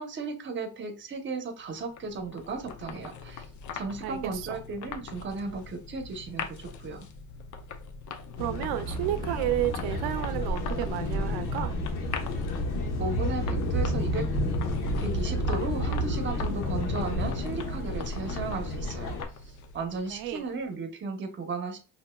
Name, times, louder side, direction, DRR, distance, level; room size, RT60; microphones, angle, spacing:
voice 1, 0.0-3.5 3.7-7.1 13.0-14.3 15.0-19.1 19.4-21.8, right 4 dB, 30° right, 0.8 m, -35 dB
sound 1, 1.6-20.6, left 5 dB, 50° left, 0.6 m, -43 dB
voice 2, 4.0-4.6 8.4-11.7 20.1-20.5, right 13 dB, 80° right, 0.7 m, -31 dB
sound 2, 8.4-19.2, left 1 dB, 80° left, 1.0 m, -30 dB
5.5 x 2.8 x 2.2 m
cardioid pair, 135°, 37 cm